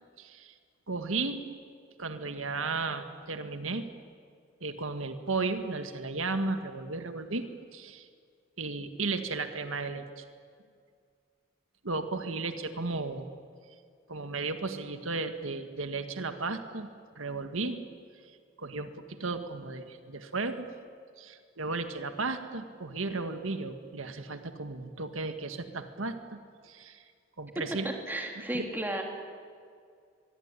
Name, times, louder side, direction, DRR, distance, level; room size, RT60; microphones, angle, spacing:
voice 1, 0.2-0.5 0.9-1.5 2.0-3.9 4.6-7.5 7.7-8.1 8.6-10.2 11.8-13.2 14.1-16.9 17.2-17.8 18.6-20.7 21.2-27.0 27.4-27.9 28.4-28.6, right 3 dB, 90° right, 8 dB, 1.8 m, -34 dB
voice 2, 27.8-29.0, right 1 dB, 10° right, 2 dB, 3.4 m, -33 dB
23.5 x 23.0 x 9.8 m, 2.2 s
head